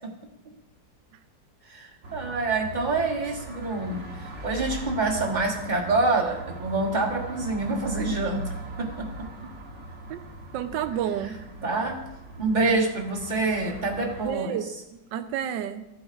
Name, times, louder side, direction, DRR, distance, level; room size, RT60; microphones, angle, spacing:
voice 1, 1.7-9.1 11.6-12.0 12.4-14.6, right 3 dB, 25° right, -1 dB, 1.3 m, -27 dB
sound 1, 2.0-14.3, right 2 dB, 45° right, 1.3 m, -39 dB
voice 2, 10.5-11.4 14.2-15.9, right 10 dB, 75° right, 10 dB, 1.3 m, -31 dB
15.0 x 7.8 x 2.5 m, 0.92 s
omnidirectional pair, 2.1 m